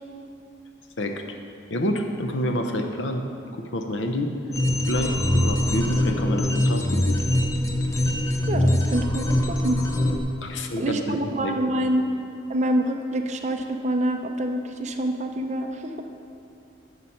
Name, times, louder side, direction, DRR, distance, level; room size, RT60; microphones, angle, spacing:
voice 1, 1.7-3.2 3.5-4.3 4.9-7.2 10.4-11.5, left 1 dB, 75° left, 5 dB, 0.8 m, -28 dB
sound 1, 4.5-10.2, left 1 dB, 15° left, 0.6 m, -23 dB
voice 2, 8.5-9.8 10.8-12.1 12.5-15.9, right 1 dB, 35° right, 5 dB, 0.6 m, -26 dB
11.0 x 6.9 x 4.4 m, 2.5 s
head